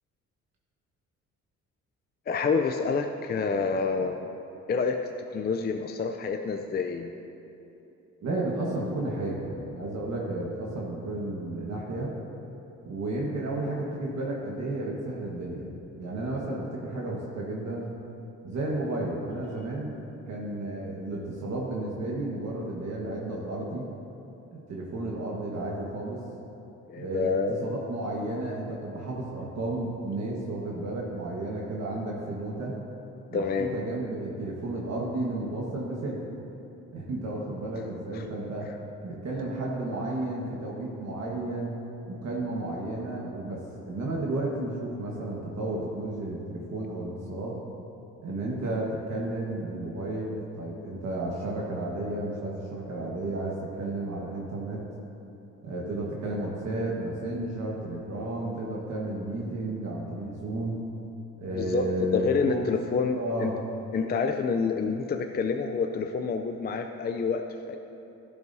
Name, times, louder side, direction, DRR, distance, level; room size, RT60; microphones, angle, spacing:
voice 1, 2.3-4.3 4.7-5.0 5.3-7.2 26.9-27.7 33.3-33.8 38.1-38.2 61.6-61.8 62.1-63.5 63.9-67.8, left 5 dB, 30° left, 5 dB, 0.5 m, -28 dB
voice 2, 8.2-12.1 12.8-15.7 16.0-17.9 18.4-20.0 20.3-23.8 24.5-26.2 27.0-32.7 33.3-36.2 36.9-38.7 39.0-41.8 42.1-43.6 43.9-47.6 48.2-54.8 55.6-60.8 61.4-62.7 63.1-63.6, right 2 dB, 60° right, -4 dB, 1.5 m, -32 dB
12.0 x 11.0 x 2.7 m, 3.0 s
cardioid pair, 90°, 30 cm